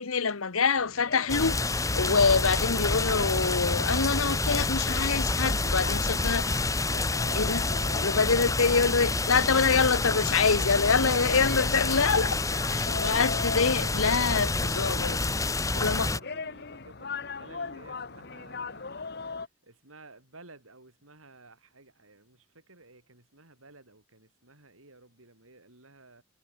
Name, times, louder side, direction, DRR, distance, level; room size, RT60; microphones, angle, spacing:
voice 1, 0.0-6.6 7.3-7.7 8.0-12.4 12.7-16.1, left 5 dB, 90° left, 1.2 m, -26 dB
sound 1, 0.8-19.5, left 4 dB, 50° left, 1.0 m, -41 dB
sound 2, 1.3-16.2, left 3 dB, 15° left, 1.2 m, -28 dB
voice 2, 15.6-26.2, right 2 dB, 85° right, 7.3 m, -54 dB
head